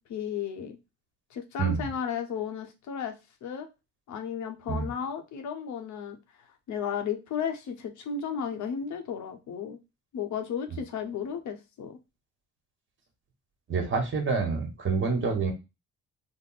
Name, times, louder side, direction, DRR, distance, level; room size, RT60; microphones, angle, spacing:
voice 1, 0.1-0.8 1.3-3.1 3.4-3.7 4.1-6.2 6.7-9.8 10.1-12.0, left 7 dB, 75° left, 5 dB, 0.8 m, -34 dB
voice 2, 13.7-15.5, right 4 dB, 40° right, 4 dB, 1.2 m, -27 dB
3.6 x 2.0 x 3.9 m, 0.25 s
cardioid pair, 90°, 30 cm